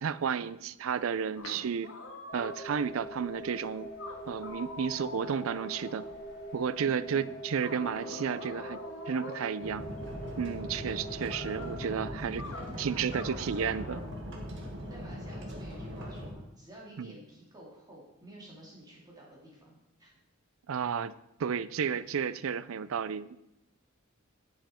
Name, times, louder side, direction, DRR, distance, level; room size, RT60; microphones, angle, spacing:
voice 1, 0.0-1.9 2.3-3.9 4.3-6.0 6.5-8.8 9.1-9.8 10.4-12.5 12.8-14.0 17.0-17.2 20.7-21.1 21.4-23.4, right 7 dB, 85° right, 17 dB, 0.4 m, -32 dB
sound 1, 1.4-2.9 3.4-3.5 4.0-6.4 7.6-9.5 11.3-11.8 12.4-12.7 13.1-14.1, left 3 dB, 70° left, 1.3 m, -45 dB
sound 2, 2.3-12.1, right 1 dB, 50° left, 4.4 m, -43 dB
voice 2, 6.8-7.3 12.3-13.9 14.9-20.1, equal, 20° right, -4 dB, 2.4 m, -50 dB
sound 3, 9.6-16.3, equal, 60° right, 1.8 m, -40 dB
10.5 x 7.4 x 4.3 m, 0.87 s
head